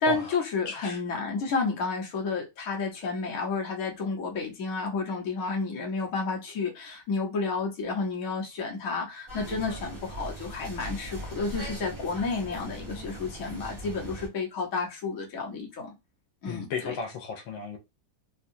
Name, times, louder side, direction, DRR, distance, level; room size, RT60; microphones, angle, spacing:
voice 1, 0.0-15.9 16.4-17.0, left 4 dB, 50° left, 1.3 m, -31 dB
voice 2, 0.7-1.0 16.5-17.8, left 4 dB, 85° left, 1.5 m, -34 dB
sound 1, 9.3-14.3, right 1 dB, 20° right, 0.9 m, -40 dB
3.7 x 2.3 x 2.6 m
omnidirectional pair, 2.2 m